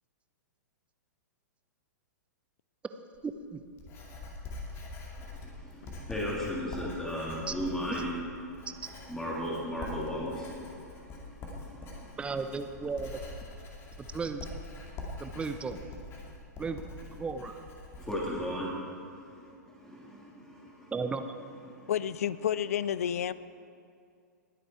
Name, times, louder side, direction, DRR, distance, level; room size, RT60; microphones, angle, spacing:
Writing, 3.1-18.5, left 2 dB, 25° left, 2.4 m, -44 dB
voice 1, 3.2-3.6 7.5-7.6 12.2-13.2 14.0-14.5 15.2-15.8 16.6-16.8 17.1-17.6 20.9-21.3, right 4 dB, 10° right, 8 dB, 0.7 m, -35 dB
voice 2, 5.2-8.6 9.1-12.4 18.0-20.9 21.7-21.9, equal, 5° left, -4 dB, 3.1 m, -37 dB
voice 3, 21.9-23.3, left 9 dB, 55° left, 17 dB, 0.4 m, -30 dB
20.0 x 8.1 x 4.6 m, 2.3 s
figure-of-eight pair, 105°, 9 cm